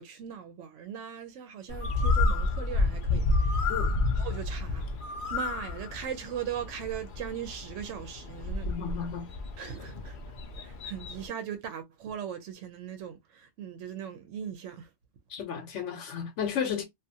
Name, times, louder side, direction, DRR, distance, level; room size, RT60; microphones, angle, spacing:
voice 1, 0.0-3.7 4.1-4.9 5.3-8.7 9.6-10.2 10.6-14.9, right 9 dB, 85° right, 0.9 m, -39 dB
Bird, 1.7-11.3, left 3 dB, 60° left, 0.6 m, -30 dB
voice 2, 8.7-9.3 15.3-16.8, left 7 dB, 75° left, 1.0 m, -33 dB
2.4 x 2.4 x 2.6 m
omnidirectional pair, 1.2 m